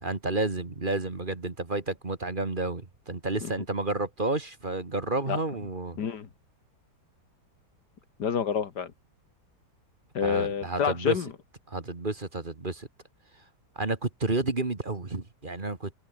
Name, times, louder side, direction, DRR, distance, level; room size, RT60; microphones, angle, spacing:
voice 1, 0.0-6.0 10.2-11.2 11.7-12.9 13.8-16.0, right 2 dB, 30° right, 2.1 m, -31 dB
voice 2, 6.0-6.3 8.2-8.9 10.1-11.3, left 7 dB, 75° left, 2.2 m, -28 dB
omnidirectional pair, 1.8 m